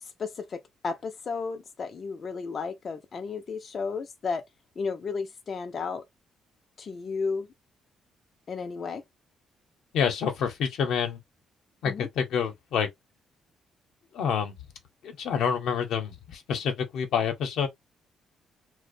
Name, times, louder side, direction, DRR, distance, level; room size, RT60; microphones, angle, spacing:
voice 1, 0.0-4.4 4.8-6.0 6.8-7.5 8.5-9.0 11.8-12.1, left 5 dB, 45° left, 0.3 m, -33 dB
voice 2, 9.9-11.2 11.8-12.9 14.1-14.6 15.0-17.7, left 7 dB, 80° left, 0.7 m, -27 dB
2.5 x 2.0 x 2.5 m
cardioid pair, 90°, 0 cm